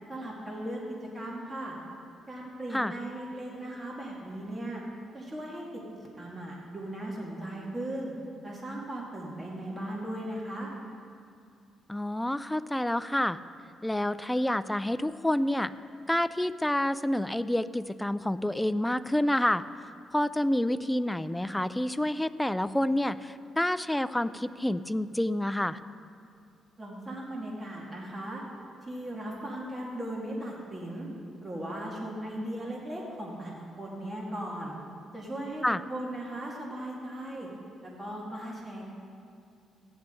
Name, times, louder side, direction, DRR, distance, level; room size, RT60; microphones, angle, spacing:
voice 1, 0.1-1.8 2.3-4.8 5.1-5.8 6.2-8.1 8.4-10.7 26.8-28.4 28.8-31.1 31.4-34.7 35.1-37.5 37.8-38.9, right 1 dB, 20° right, -3 dB, 2.1 m, -37 dB
voice 2, 11.9-13.4 13.8-15.7 16.1-19.6 20.1-25.8 35.6-35.8, left 1 dB, 5° left, 14 dB, 0.3 m, -28 dB
15.0 x 10.0 x 3.8 m, 2.5 s
cardioid pair, 90°, 0 cm